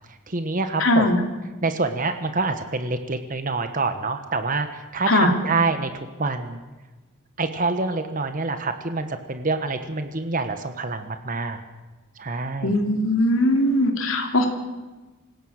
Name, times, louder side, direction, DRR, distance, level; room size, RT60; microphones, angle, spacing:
voice 1, 0.3-1.1 1.6-6.6 7.4-11.6 12.2-12.7, right 3 dB, 40° right, 8 dB, 1.3 m, -26 dB
voice 2, 0.8-1.2 5.1-5.3 12.6-14.5, left 1 dB, 80° left, 4 dB, 2.9 m, -20 dB
26.5 x 17.0 x 6.6 m, 1.2 s
head